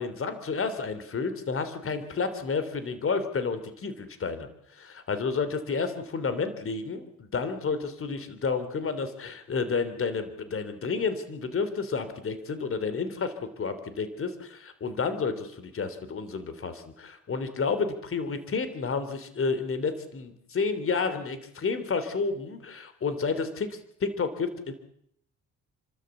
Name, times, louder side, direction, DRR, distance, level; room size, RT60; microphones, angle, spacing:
voice 1, 0.0-24.7, left 5 dB, 45° left, 11 dB, 3.4 m, -31 dB
29.5 x 13.0 x 8.4 m, 0.71 s
cardioid pair, 90°, 30 cm